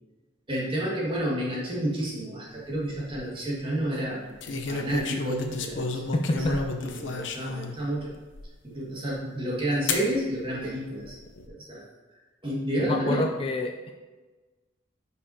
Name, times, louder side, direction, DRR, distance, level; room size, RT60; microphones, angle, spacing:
voice 1, 0.5-8.1 8.6-11.2 11.5-11.8 12.4-13.3, right 1 dB, 25° right, -4 dB, 1.7 m, -30 dB
sound 1, 2.7-3.2 4.4-7.7 8.4-8.5 9.9-10.1 11.0-11.5, left 4 dB, 70° left, 0.7 m, -32 dB
voice 2, 6.1-6.6 12.9-13.7, left 1 dB, 25° left, 4 dB, 0.3 m, -26 dB
9.8 x 5.5 x 2.8 m, 1.3 s
head